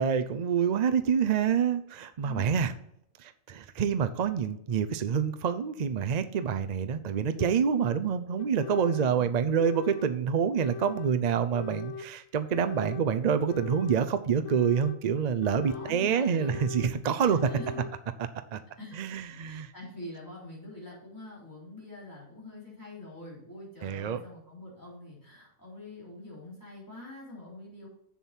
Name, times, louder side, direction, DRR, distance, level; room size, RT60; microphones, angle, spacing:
voice 1, 0.0-2.7 3.2-17.5 18.5-18.6 18.9-19.7 23.8-24.2, right 7 dB, 50° right, 9 dB, 0.5 m, -27 dB
voice 2, 2.2-2.6 15.7-16.5 17.2-17.8 18.8-27.9, left 2 dB, 15° left, -6 dB, 3.8 m, -45 dB
sound 1, 6.4-6.5 7.4-7.5 8.4-9.2 9.6-10.1 10.6-11.1 11.5-12.1 12.5-13.1 13.5-14.0 14.4-15.0 15.4-16.0 16.4-17.0 17.4-17.9, left 5 dB, 75° left, 1.0 m, -40 dB
7.4 x 7.1 x 4.4 m, 0.71 s
omnidirectional pair, 1.4 m